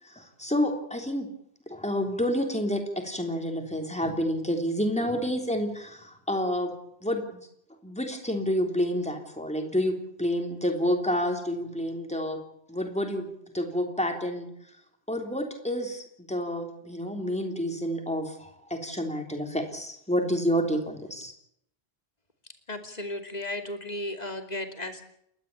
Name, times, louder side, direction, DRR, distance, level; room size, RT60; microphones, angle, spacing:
voice 1, 0.0-1.3 1.7-6.7 7.0-7.2 7.8-12.4 12.7-13.3 13.5-14.5 15.1-21.3, equal, 5° left, 3 dB, 3.4 m, -29 dB
voice 2, 22.7-25.0, left 1 dB, 40° left, 6 dB, 2.9 m, -35 dB
30.0 x 12.5 x 8.6 m, 0.75 s
omnidirectional pair, 1.0 m